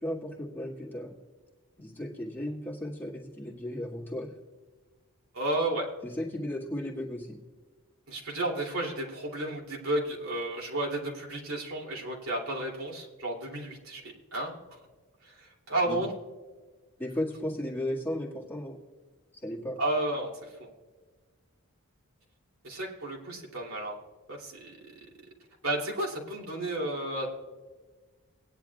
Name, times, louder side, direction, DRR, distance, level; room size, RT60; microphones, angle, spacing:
voice 1, 0.0-1.1 1.8-4.3 6.0-7.4 15.9-16.0 17.0-18.8 19.3-19.8, left 1 dB, 10° left, -5 dB, 1.8 m, -35 dB
voice 2, 5.3-5.9 8.1-14.5 15.2-16.1 19.8-20.7 22.6-24.0 24.3-24.7 25.6-27.3, right 1 dB, 75° right, -2 dB, 2.8 m, -32 dB
19.0 x 10.5 x 2.3 m, 1.4 s
head